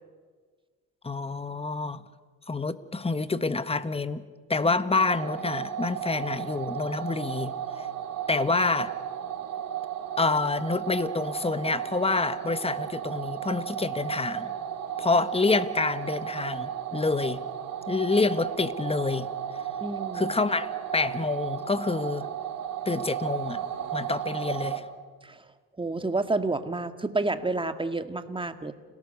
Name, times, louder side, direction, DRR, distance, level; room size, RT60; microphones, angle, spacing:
voice 1, 1.0-2.0 2.5-4.2 4.5-7.9 8.3-8.9 10.2-14.5 15.0-17.4 17.9-19.3 20.1-22.3 22.8-23.6 23.9-24.8, left 3 dB, 15° left, 13 dB, 1.4 m, -27 dB
sound 1, 4.9-24.8, right 9 dB, 65° right, 3.2 m, -34 dB
voice 2, 19.8-20.3 25.2-25.4 25.8-28.7, right 2 dB, 15° right, 9 dB, 1.8 m, -29 dB
29.5 x 18.0 x 6.6 m, 1.5 s
supercardioid pair, 80°, 37 cm